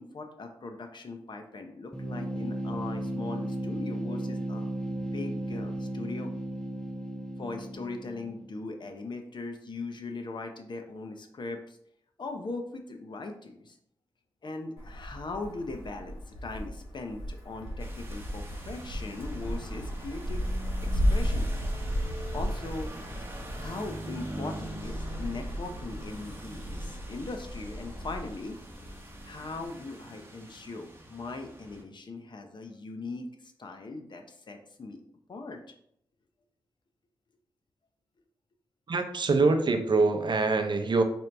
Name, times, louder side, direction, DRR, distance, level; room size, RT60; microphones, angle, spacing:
voice 1, 0.0-6.3 7.4-11.8 12.2-13.8 14.4-20.5 20.9-21.5 22.3-22.9 23.6-28.6 29.2-35.0 35.3-35.6, left 3 dB, 50° left, 5 dB, 0.6 m, -39 dB
sound 1, 1.9-8.6, right 1 dB, 5° left, 0.6 m, -35 dB
Wind, 14.8-29.7, equal, 80° left, 1.4 m, -34 dB
sound 2, 17.8-31.8, right 1 dB, 25° right, 0.8 m, -44 dB
voice 2, 38.9-41.0, right 3 dB, 50° right, 6 dB, 0.6 m, -24 dB
4.3 x 2.6 x 3.3 m, 0.71 s
cardioid pair, 60°, 10 cm